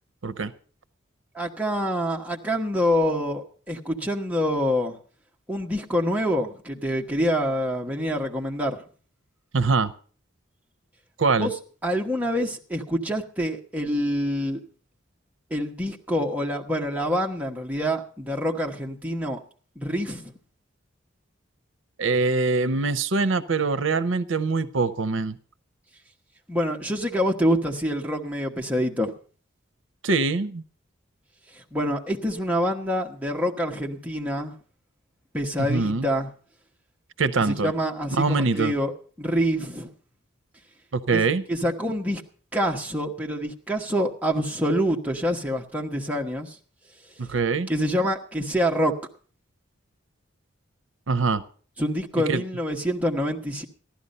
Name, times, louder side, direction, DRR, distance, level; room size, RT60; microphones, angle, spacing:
voice 1, 1.3-5.0 5.5-8.8 11.4-11.5 11.8-14.6 15.5-19.4 19.8-20.3 26.5-29.1 31.5-34.5 35.3-36.3 37.4-38.9 39.2-39.9 41.1-41.2 41.5-42.2 42.5-46.6 47.7-48.9 51.8-53.6, equal, 5° right, 0 dB, 1.2 m, -26 dB
voice 2, 9.5-9.9 11.2-11.5 22.0-25.4 30.0-30.6 35.7-36.1 37.2-37.7 38.2-38.7 40.9-41.4 47.2-47.7 51.1-51.4 52.3-52.4, right 4 dB, 75° right, 14 dB, 0.7 m, -23 dB
14.5 x 11.5 x 5.4 m, 0.42 s
head